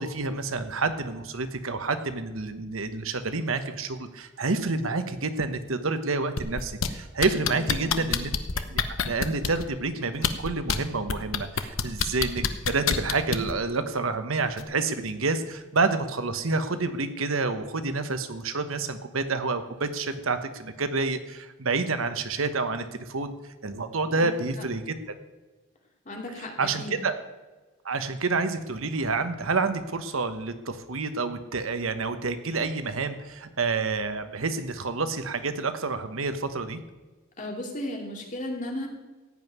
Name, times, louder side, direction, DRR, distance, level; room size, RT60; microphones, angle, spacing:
voice 1, 0.0-8.3 8.7-23.3 23.6-24.9 26.6-27.1 27.8-36.8, right 3 dB, 85° right, 10 dB, 1.1 m, -28 dB
sound 1, 6.4-6.9 7.2-9.6 10.1-10.8 11.1-13.5 14.6-14.7, left 6 dB, 75° left, 0.9 m, -26 dB
voice 2, 7.5-8.2 24.2-24.7 26.0-27.0 37.4-38.9, left 1 dB, 40° left, 1 dB, 2.7 m, -36 dB
15.5 x 5.5 x 9.4 m, 1.3 s
head